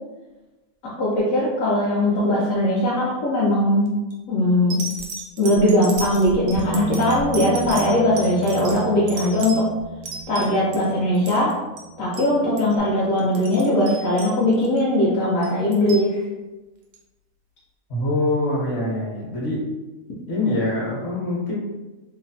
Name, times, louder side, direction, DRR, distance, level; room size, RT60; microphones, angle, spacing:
voice 1, 0.8-3.9 4.3-4.8 5.4-9.7 10.3-11.6 12.0-16.2, left 1 dB, 75° left, -7 dB, 1.0 m, -20 dB
sound 1, 3.9-4.1 4.7-10.9 11.1-11.5 11.8-11.9 12.1-12.3 12.6-12.8 13.2-14.8 15.4-16.1 16.9-17.0, right 3 dB, 85° right, 1.0 m, -35 dB
Bass guitar, 6.5-12.8, right 6 dB, 55° right, 0.5 m, -35 dB
voice 2, 17.9-19.6 20.3-21.6, left 1 dB, 55° left, -6 dB, 1.1 m, -24 dB
2.8 x 2.0 x 2.6 m, 1.1 s
omnidirectional pair, 1.5 m